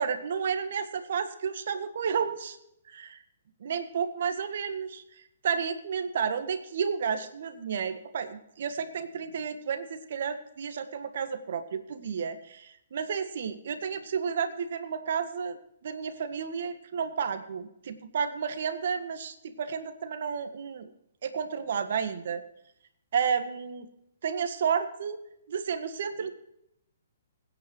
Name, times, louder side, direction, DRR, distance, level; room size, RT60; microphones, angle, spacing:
voice 1, 0.0-2.6 2.9-3.2 3.6-5.0 5.4-15.6 15.8-20.9 21.2-22.4 23.1-23.9 24.2-25.2 25.5-26.3, right 6 dB, 60° right, 9 dB, 1.6 m, -31 dB
20.5 x 9.8 x 3.1 m, 0.79 s
figure-of-eight pair, 125°, 0 cm